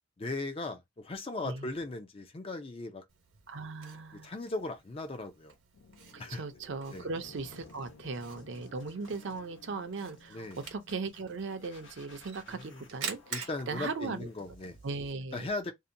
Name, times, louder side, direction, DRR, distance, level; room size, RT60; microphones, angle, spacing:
voice 1, 0.2-3.0 4.2-5.5 6.2-6.4 6.9-7.1 10.3-10.6 12.5-12.8 13.3-14.8 15.3-15.7, left 2 dB, 30° left, 0.4 m, -38 dB
Camera, 3.1-15.1, right 6 dB, 80° right, 0.9 m, -48 dB
voice 2, 3.5-4.3 6.1-14.3 14.8-15.5, right 4 dB, 60° right, 0.5 m, -38 dB
sound 1, 5.7-11.8 12.8-14.0, left 4 dB, 80° left, 0.5 m, -57 dB
sound 2, 7.1-15.1, left 2 dB, 65° left, 0.9 m, -58 dB
2.7 x 2.1 x 2.6 m
head